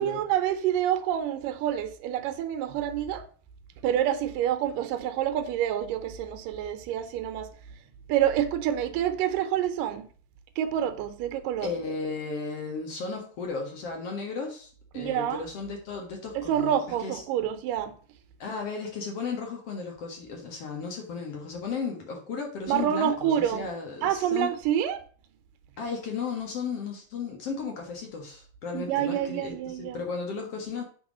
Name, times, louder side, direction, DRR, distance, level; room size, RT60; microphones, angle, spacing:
voice 1, 0.0-3.3 3.8-7.8 8.1-10.1 10.6-11.7 15.0-15.4 16.3-17.9 22.7-23.7 24.0-25.0 28.7-30.1, right 10 dB, 80° right, 2.4 m, -27 dB
voice 2, 11.6-17.2 18.4-24.5 25.8-30.8, left 5 dB, 55° left, 2.2 m, -35 dB
8.1 x 4.6 x 6.1 m
omnidirectional pair, 3.9 m